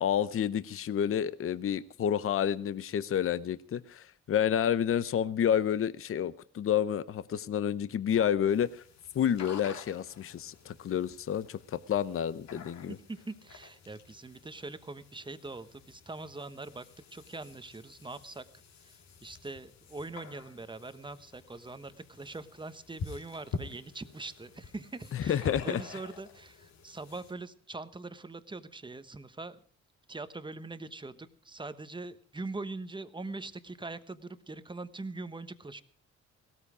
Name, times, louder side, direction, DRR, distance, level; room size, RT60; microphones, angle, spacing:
voice 1, 0.0-8.8 9.1-13.0 25.1-25.8, left 9 dB, 45° left, 15 dB, 0.7 m, -29 dB
sound 1, 8.5-27.3, left 5 dB, 60° left, 2.2 m, -47 dB
voice 2, 12.9-16.8 17.1-18.4 18.8-29.6 30.1-35.8, right 3 dB, 15° right, 12 dB, 1.1 m, -42 dB
17.5 x 13.5 x 5.0 m, 0.44 s
cardioid pair, 90°, 30 cm